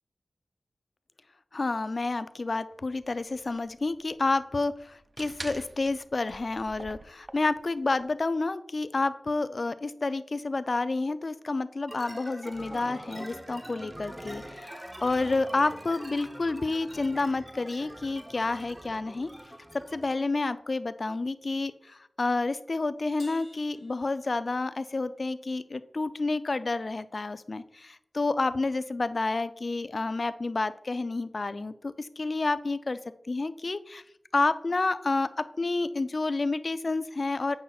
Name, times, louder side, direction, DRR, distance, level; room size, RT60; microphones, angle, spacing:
voice 1, 1.5-19.3 19.9-33.0 33.3-34.0 34.3-37.6, left 3 dB, 55° left, 13 dB, 0.4 m, -29 dB
sound 1, 2.7-8.0, right 2 dB, 50° right, 0.3 m, -46 dB
sound 2, 11.9-20.2, right 1 dB, 15° right, 0.8 m, -44 dB
Crash cymbal, 23.2-24.9, left 3 dB, 85° left, 1.0 m, -53 dB
8.5 x 5.8 x 2.3 m, 0.78 s
cardioid pair, 45°, 0 cm